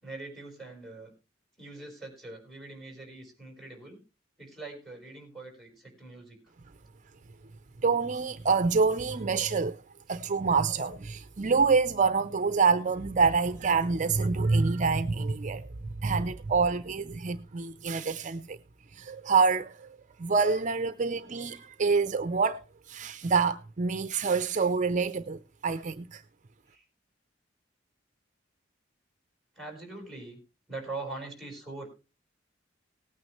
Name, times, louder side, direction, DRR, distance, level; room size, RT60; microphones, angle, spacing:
voice 1, 0.0-1.1 1.6-4.0 4.4-6.4 14.0-14.1 21.0-21.2 26.7-26.8 29.5-30.4 30.7-31.9, right 3 dB, ahead, 5.1 m, -42 dB
voice 2, 7.8-9.8 10.1-18.6 18.9-26.2, right 4 dB, 40° right, 0.6 m, -27 dB
18.5 x 9.3 x 3.2 m
head